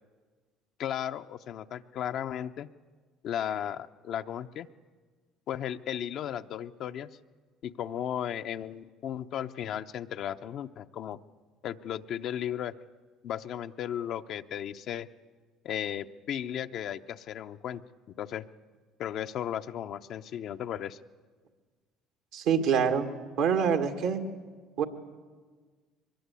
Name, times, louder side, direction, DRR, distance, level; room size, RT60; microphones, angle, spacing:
voice 1, 0.8-2.7 3.2-4.7 5.5-7.1 7.6-11.2 11.6-12.7 13.2-15.1 15.6-17.8 18.2-18.4 19.0-21.0, left 10 dB, 60° left, 8 dB, 0.8 m, -35 dB
voice 2, 22.3-23.1 23.4-24.2 24.8-24.9, right 7 dB, 75° right, 4 dB, 2.0 m, -25 dB
23.0 x 21.0 x 8.4 m, 1.5 s
hypercardioid pair, 70°, 0 cm